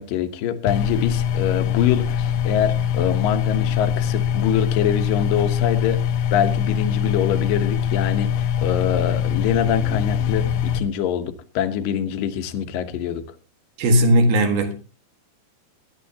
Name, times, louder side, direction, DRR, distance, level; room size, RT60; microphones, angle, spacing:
voice 1, 0.0-6.0 6.3-13.2, left 8 dB, 70° left, 2.5 m, -24 dB
sound 1, 0.7-10.8, left 9 dB, 85° left, 1.8 m, -23 dB
voice 2, 13.8-14.7, right 1 dB, 70° right, 3.4 m, -17 dB
20.0 x 12.0 x 2.8 m
omnidirectional pair, 4.6 m